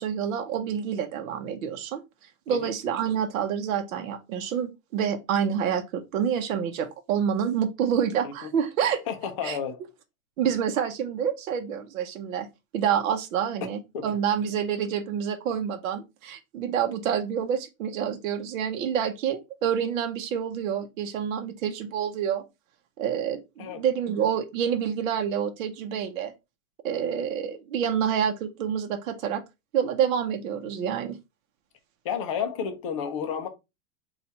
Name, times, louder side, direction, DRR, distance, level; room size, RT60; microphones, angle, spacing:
voice 1, 0.0-2.0 2.5-9.0 9.4-9.6 10.4-12.5 12.7-22.4 23.0-26.3 26.8-29.4 29.7-31.2, right 8 dB, 70° right, 0.8 m, -28 dB
voice 2, 9.1-9.8 13.9-14.0 23.6-23.8 32.0-33.5, left 7 dB, 25° left, 0.4 m, -31 dB
4.1 x 2.4 x 4.0 m
supercardioid pair, 165°, 42 cm